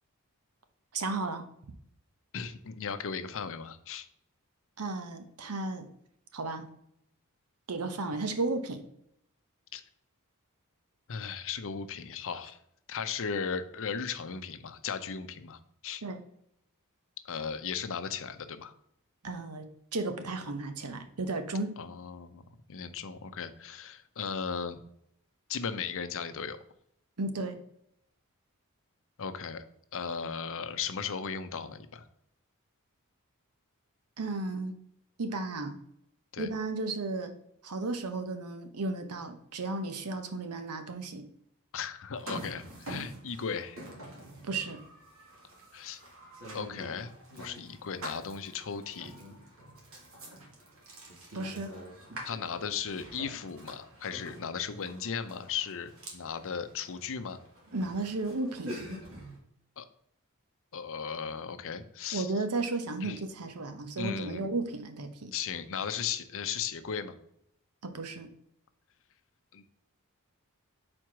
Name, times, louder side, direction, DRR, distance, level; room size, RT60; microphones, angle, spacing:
voice 1, 0.9-1.4 4.8-5.9 6.3-6.7 7.7-8.8 16.0-16.2 19.2-21.8 27.2-27.6 34.2-34.7 35.2-35.8 36.4-37.3 37.6-41.3 44.4-44.8 51.3-51.7 57.7-58.8 62.1-65.3 67.8-68.3, right 3 dB, 85° right, 8 dB, 0.9 m, -34 dB
voice 2, 2.3-4.1 9.7-9.8 11.1-12.6 12.9-16.0 17.2-18.7 21.8-22.4 22.7-24.8 25.5-26.6 29.2-29.6 29.9-32.1 36.3-36.5 41.7-43.8 45.7-46.0 46.5-47.1 47.4-49.1 52.2-57.4 59.8-59.9 60.7-62.3 63.0-63.2 64.0-64.5 65.3-67.2 69.5-69.6, left 6 dB, 65° left, 10 dB, 0.6 m, -36 dB
sound 1, 42.1-59.4, right 1 dB, 65° right, 1.9 m, -46 dB
4.7 x 4.3 x 5.9 m, 0.73 s
head